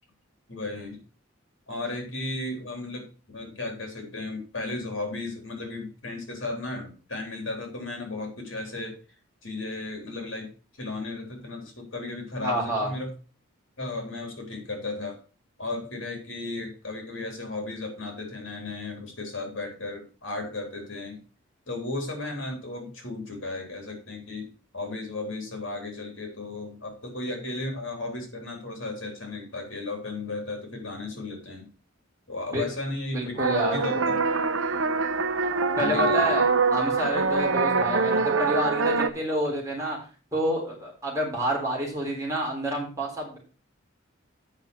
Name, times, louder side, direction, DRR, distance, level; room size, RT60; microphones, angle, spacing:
voice 1, 0.5-1.0 1.7-9.0 9.4-10.5 10.8-13.1 13.8-15.2 15.6-21.2 21.7-31.7 32.3-34.1 35.8-36.4, left 2 dB, 65° left, 2 dB, 3.4 m, -35 dB
voice 2, 12.4-12.9 32.5-32.6 33.1-34.0 35.8-36.4 36.7-40.0 40.3-43.4, equal, 15° right, -3 dB, 3.5 m, -29 dB
sound 1, 33.4-39.1, right 4 dB, 70° right, 0.8 m, -24 dB
8.8 x 5.3 x 6.1 m, 0.36 s
head